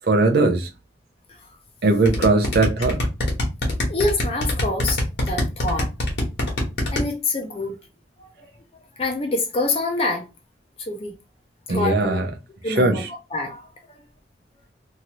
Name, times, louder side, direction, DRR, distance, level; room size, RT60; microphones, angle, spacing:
voice 1, 0.1-0.7 1.8-3.0 11.7-12.3 12.8-12.9, right 2 dB, 60° right, 0.6 m, -19 dB
sound 1, 2.1-7.0, left 1 dB, 70° left, 1.2 m, -23 dB
voice 2, 3.9-5.0 5.3-5.9 6.9-7.7 8.2-8.5 9.0-10.3 10.8-11.1 11.7-12.2 12.6-14.0, left 2 dB, 35° left, 0.6 m, -26 dB
2.8 x 2.6 x 2.9 m
head